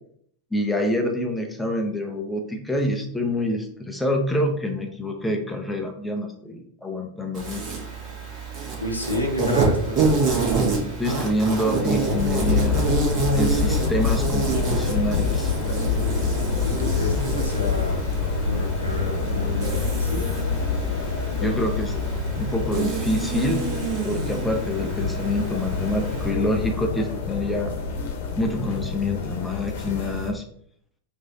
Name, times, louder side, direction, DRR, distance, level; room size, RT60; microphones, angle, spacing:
voice 1, 0.5-7.6 11.0-12.8 13.3-15.5 21.4-22.0 22.4-23.6 24.0-27.7 28.4-30.4, left 1 dB, 5° left, 1 dB, 0.7 m, -26 dB
Insect, 7.3-26.3, right 4 dB, 35° right, 1.6 m, -28 dB
voice 2, 8.8-10.1 16.6-18.1 18.4-20.2, left 2 dB, 85° left, 0 dB, 1.0 m, -30 dB
sound 1, 12.1-30.3, left 5 dB, 55° left, 1.1 m, -26 dB
4.8 x 2.7 x 3.9 m, 0.65 s
figure-of-eight pair, 90°, 0 cm